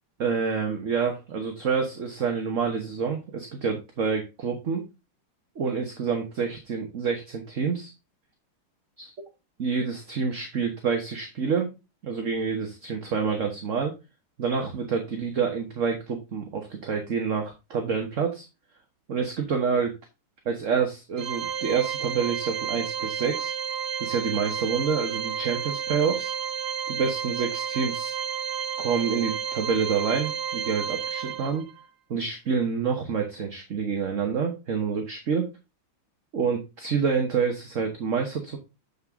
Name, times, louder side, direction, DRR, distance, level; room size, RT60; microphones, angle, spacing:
voice 1, 0.2-4.8 5.5-7.9 9.6-11.7 12.0-13.9 14.4-18.5 19.1-19.9 20.4-23.5 24.0-26.3 26.9-28.1 28.8-31.6 32.1-35.5 36.3-38.6, right 6 dB, 40° right, 4 dB, 1.3 m, -27 dB
Organ, 21.2-31.8, right 8 dB, 65° right, 1.1 m, -31 dB
7.4 x 6.1 x 3.5 m, 0.26 s
omnidirectional pair, 2.3 m